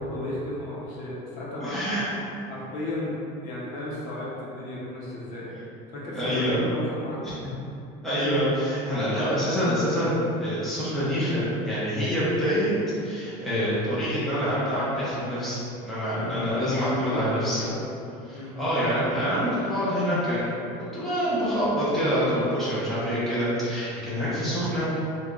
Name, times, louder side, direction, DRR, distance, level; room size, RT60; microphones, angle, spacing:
voice 1, 0.0-2.1 2.5-5.5 5.9-7.4 16.1-16.4 16.7-17.8 18.3-18.5, left 1 dB, 60° left, -6 dB, 0.9 m, -34 dB
voice 2, 1.6-2.1 6.1-6.7 8.0-12.7 13.0-17.6 18.3-20.7 20.9-25.0, equal, ahead, -12 dB, 0.8 m, -26 dB
3.4 x 2.3 x 3.6 m, 2.7 s
cardioid pair, 170°, 17 cm